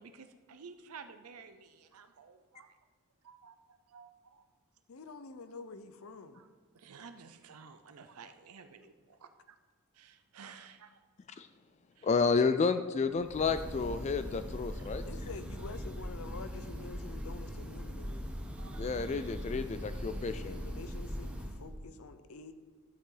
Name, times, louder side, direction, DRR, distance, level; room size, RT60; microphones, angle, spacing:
voice 1, 0.0-2.7 3.2-3.6 3.9-4.4 6.3-6.5 6.7-9.3 10.0-10.9 12.0-12.1 14.8-14.9 18.6-18.8, right 5 dB, 85° right, 9 dB, 0.6 m, -52 dB
voice 2, 4.9-6.4 15.0-18.3 20.1-22.5, left 4 dB, 70° left, 10 dB, 0.7 m, -48 dB
voice 3, 12.0-15.0 18.8-20.6, left 4 dB, 30° left, 11 dB, 0.3 m, -30 dB
Breathing / Bird, 13.2-21.7, equal, 5° right, 0.9 m, -40 dB
12.0 x 8.3 x 3.9 m, 1.6 s
head